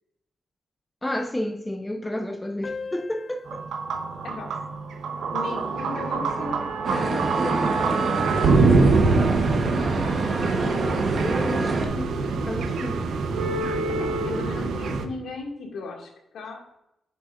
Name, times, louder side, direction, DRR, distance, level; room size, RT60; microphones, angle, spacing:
voice 1, 1.0-3.7 10.5-13.1, left 1 dB, 10° left, 0.5 m, -32 dB
sound 1, 2.6-7.6, left 4 dB, 35° left, 0.9 m, -44 dB
sound 2, 3.5-15.1, right 4 dB, 85° right, 0.7 m, -25 dB
voice 2, 5.3-6.7 6.9-7.8 8.1-9.0 13.9-16.6, left 3 dB, 80° left, 2.0 m, -37 dB
sound 3, 6.8-11.9, right 3 dB, 45° right, 1.1 m, -26 dB
8.3 x 6.1 x 2.5 m
wide cardioid pair, 160°, 0 cm